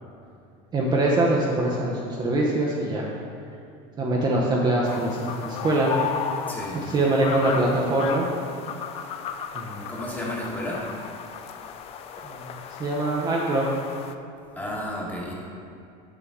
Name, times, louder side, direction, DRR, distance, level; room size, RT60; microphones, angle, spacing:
voice 1, 0.7-3.1 4.0-5.9 6.8-8.3 9.5-9.9 12.2-12.4 12.8-13.7, right 2 dB, 25° right, -3 dB, 0.7 m, -23 dB
sound 1, 4.8-14.1, left 7 dB, 35° left, 0.3 m, -35 dB
voice 2, 6.5-6.8 9.9-10.9 14.5-15.3, left 1 dB, 10° left, -4 dB, 1.3 m, -32 dB
7.0 x 6.7 x 3.6 m, 2.6 s
cardioid pair, 145°, 17 cm